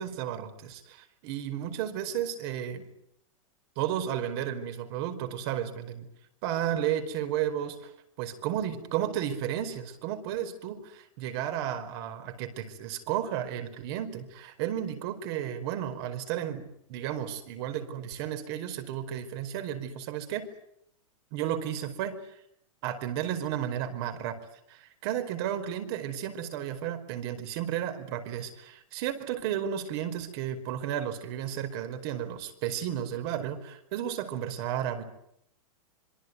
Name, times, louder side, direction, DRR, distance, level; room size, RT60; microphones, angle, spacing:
voice 1, 0.0-2.9 3.8-6.1 6.4-7.9 8.2-20.5 21.3-22.4 22.8-24.4 24.7-35.0, right 10 dB, 45° right, 8 dB, 4.9 m, -33 dB
26.5 x 23.5 x 9.5 m, 0.74 s
hypercardioid pair, 145°, 17 cm